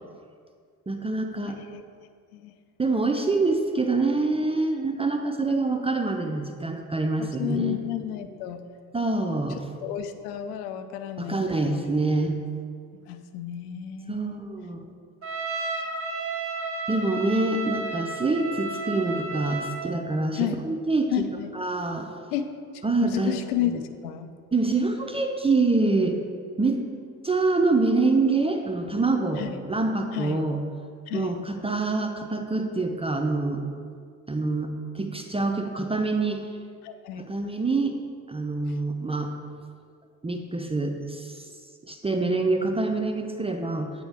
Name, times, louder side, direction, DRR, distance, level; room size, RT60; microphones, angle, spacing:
voice 1, 0.9-1.6 2.8-7.8 8.9-9.6 11.2-12.4 14.1-14.9 16.9-20.4 20.7-21.1 21.6-22.1 22.8-23.3 24.5-26.2 26.6-26.8 27.2-30.6 31.1-33.6 34.3-36.4 37.2-38.0 38.3-39.3 40.2-41.5 41.9-43.9, right 3 dB, 15° right, 4 dB, 0.5 m, -25 dB
voice 2, 1.4-1.8 2.3-2.5 7.2-8.6 9.8-12.0 13.0-14.4 15.8-15.9 16.3-16.4 20.4-20.6 21.1-21.5 22.3-22.5 22.7-23.7 24.0-24.3 29.4-29.6 30.1-30.4 31.1-31.4 36.8-37.3 38.7-38.8, left 11 dB, 80° left, 9 dB, 0.5 m, -32 dB
Trumpet, 15.2-19.9, right 3 dB, 30° right, 0.8 m, -32 dB
8.0 x 4.5 x 3.4 m, 2.1 s
hypercardioid pair, 45°, 45 cm